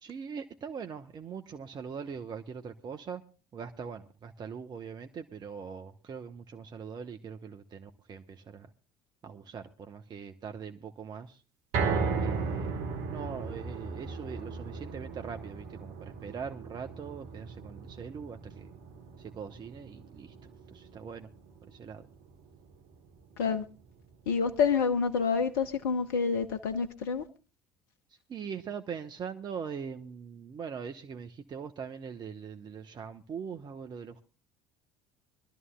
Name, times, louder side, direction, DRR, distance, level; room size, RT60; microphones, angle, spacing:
voice 1, 0.0-3.2 3.5-8.7 9.2-11.4 12.2-12.8 13.1-18.7 19.2-20.3 20.7-21.3 21.7-22.1 28.3-34.2, right 6 dB, 35° right, 1.0 m, -41 dB
sound 1, 11.7-24.0 24.4-24.5 24.9-25.0, right 5 dB, 60° right, 1.5 m, -37 dB
voice 2, 24.3-27.3, left 5 dB, 70° left, 0.9 m, -28 dB
24.5 x 12.5 x 2.3 m
figure-of-eight pair, 60°, 12 cm